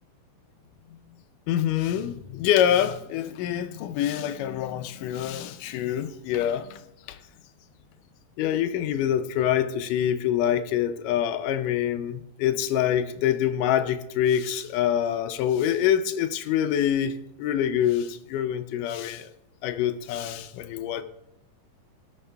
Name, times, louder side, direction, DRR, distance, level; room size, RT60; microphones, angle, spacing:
voice 1, 1.5-6.8 7.1-7.2 8.4-19.3 19.6-21.0, left 10 dB, 80° left, 2.1 m, -25 dB
17.5 x 6.6 x 3.4 m
omnidirectional pair, 3.9 m